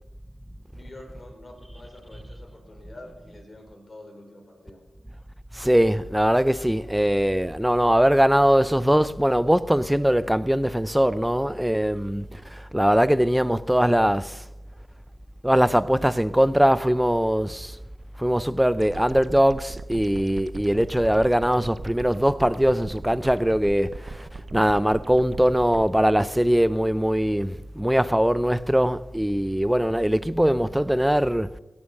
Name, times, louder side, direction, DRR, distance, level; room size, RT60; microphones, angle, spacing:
voice 1, 0.7-4.8, left 1 dB, 35° left, 4.3 m, -46 dB
voice 2, 5.6-12.2 12.7-14.3 15.4-17.7 18.2-23.9 24.5-31.5, equal, 5° right, 0.5 m, -21 dB
sound 1, 18.8-25.9, right 4 dB, 55° right, 0.5 m, -40 dB
17.5 x 7.2 x 6.5 m
cardioid pair, 65°, 0 cm